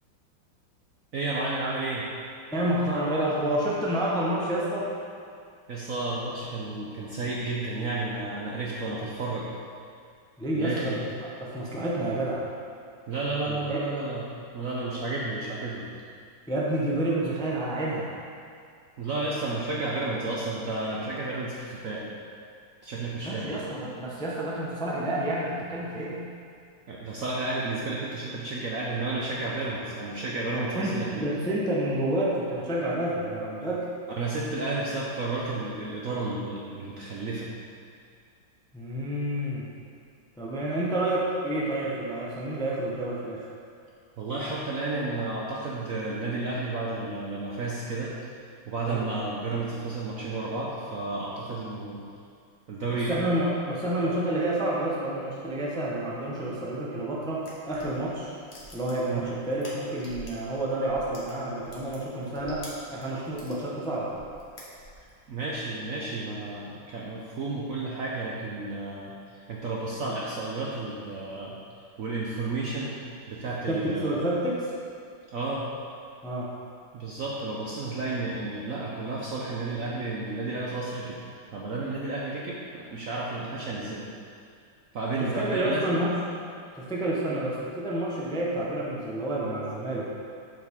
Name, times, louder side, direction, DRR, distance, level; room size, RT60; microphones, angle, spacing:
voice 1, 1.1-2.1 5.7-9.5 10.5-11.0 13.1-15.8 19.0-22.1 22.8-23.5 26.9-31.3 34.1-37.5 44.2-48.1 48.7-52.0 52.7-53.1 59.1-59.3 65.3-71.6 72.0-74.2 75.3-75.7 76.9-81.2 81.5-84.1 84.9-85.9 87.3-87.4, right 3 dB, 60° right, -4 dB, 0.9 m, -32 dB
voice 2, 2.5-4.9 10.4-12.4 13.4-13.8 16.5-18.1 23.2-26.2 30.5-33.9 38.7-39.7 40.4-43.5 48.9-49.0 52.9-58.3 58.7-64.1 73.7-74.7 76.2-76.5 85.2-86.2 86.7-90.1, right 1 dB, 5° left, -5 dB, 0.6 m, -29 dB
sound 1, 57.4-60.5 60.8-63.6 64.1-65.2, equal, 40° left, 1.5 m, -47 dB
7.7 x 7.2 x 3.7 m, 2.3 s
omnidirectional pair, 2.2 m